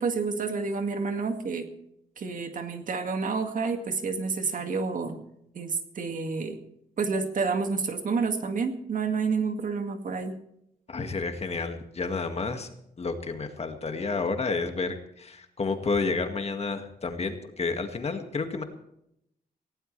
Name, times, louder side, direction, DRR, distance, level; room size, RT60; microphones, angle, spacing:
voice 1, 0.0-1.7 2.2-5.2 5.5-6.6 7.0-10.4, right 4 dB, 50° right, 6 dB, 2.1 m, -29 dB
voice 2, 10.9-12.7 13.0-18.6, left 4 dB, 40° left, 6 dB, 2.0 m, -30 dB
18.0 x 17.0 x 3.3 m, 0.78 s
wide cardioid pair, 125°, 17 cm